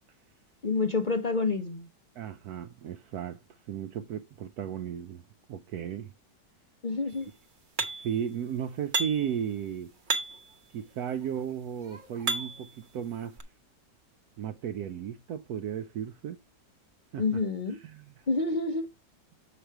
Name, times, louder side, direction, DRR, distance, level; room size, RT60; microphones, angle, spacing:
voice 1, 0.6-1.9 6.8-7.3 17.2-17.8 18.3-18.9, left 3 dB, 50° left, 0.5 m, -28 dB
voice 2, 2.2-3.4 3.7-5.2 5.5-6.1 8.0-9.9 10.7-13.4 14.4-16.4 17.1-17.2 17.8-18.2, right 9 dB, 70° right, 1.0 m, -35 dB
sound 1, 7.8-8.2 8.9-9.4 10.1-10.5 11.3-12.7 13.4-13.5, right 3 dB, 40° right, 0.8 m, -32 dB
8.0 x 5.1 x 4.5 m
omnidirectional pair, 1.9 m